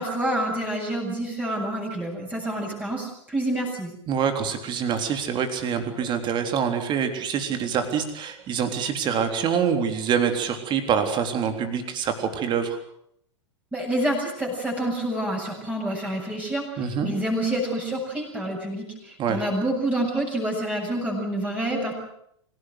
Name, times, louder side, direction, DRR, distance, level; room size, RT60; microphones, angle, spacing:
voice 1, 0.0-3.9 13.7-16.6 17.0-21.9, right 1 dB, 10° right, -2 dB, 7.7 m, -27 dB
voice 2, 4.1-12.8 16.8-17.1 19.2-19.4, right 7 dB, 30° right, 7 dB, 3.6 m, -25 dB
26.0 x 17.5 x 8.1 m, 0.71 s
figure-of-eight pair, 95°, 16 cm